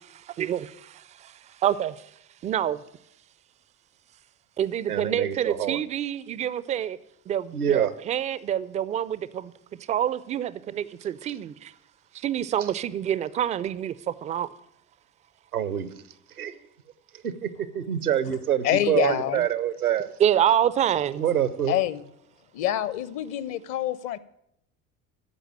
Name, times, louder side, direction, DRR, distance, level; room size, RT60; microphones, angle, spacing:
voice 1, 0.1-2.1 2.4-2.8 4.6-7.0 7.3-9.5 9.9-11.7 12.1-14.5 20.2-21.2, right 10 dB, 20° right, 0.3 m, -27 dB
voice 2, 4.9-5.8 7.5-7.9 15.5-15.9 16.4-16.6 17.2-17.5 17.7-20.1 21.2-21.7, right 10 dB, 85° right, 0.7 m, -26 dB
voice 3, 18.6-19.5 21.7-22.0 22.5-24.2, left 12 dB, 45° left, 0.7 m, -26 dB
13.5 x 5.0 x 8.7 m
figure-of-eight pair, 60°, 44 cm